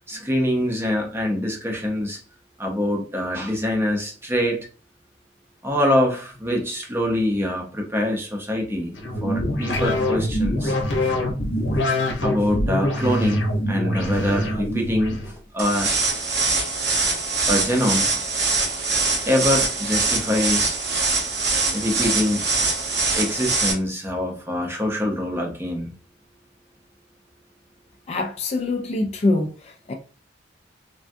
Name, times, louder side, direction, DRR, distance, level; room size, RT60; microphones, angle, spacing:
voice 1, 0.0-2.2 2.6-4.6 5.6-8.9 9.2-10.7 12.2-15.2 15.5-15.9 17.5-18.1 19.2-20.8 21.7-22.4 23.1-25.9, left 1 dB, 15° right, 0.6 m, -24 dB
sound 1, 8.9-15.3, left 1 dB, 65° left, 0.7 m, -24 dB
sound 2, 15.6-23.7, right 3 dB, 60° right, 0.8 m, -23 dB
voice 2, 28.1-29.5 29.9-30.0, left 2 dB, 35° left, 0.3 m, -23 dB
3.4 x 2.2 x 2.6 m
head